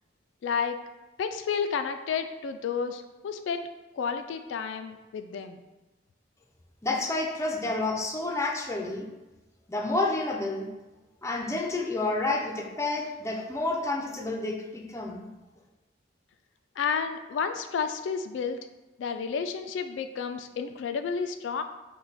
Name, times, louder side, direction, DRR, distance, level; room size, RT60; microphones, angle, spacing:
voice 1, 0.4-0.8 1.2-3.7 3.9-5.6 16.8-18.6 19.0-21.6, left 6 dB, 80° left, 8 dB, 0.3 m, -31 dB
voice 2, 6.8-9.1 9.7-10.7 11.2-15.3, left 2 dB, 15° left, 1 dB, 0.5 m, -29 dB
5.6 x 2.2 x 4.1 m, 1.1 s
head